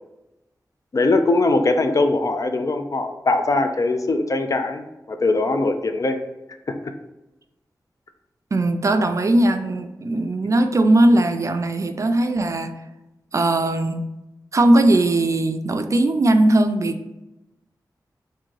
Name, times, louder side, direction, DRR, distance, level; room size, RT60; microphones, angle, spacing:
voice 1, 0.9-6.2 10.4-10.6, left 2 dB, 50° left, 7 dB, 0.4 m, -21 dB
voice 2, 8.5-12.7 13.3-14.1 14.5-17.0, right 1 dB, 45° right, 7 dB, 0.4 m, -19 dB
3.6 x 2.6 x 3.1 m, 0.98 s
cardioid pair, 60°, 7 cm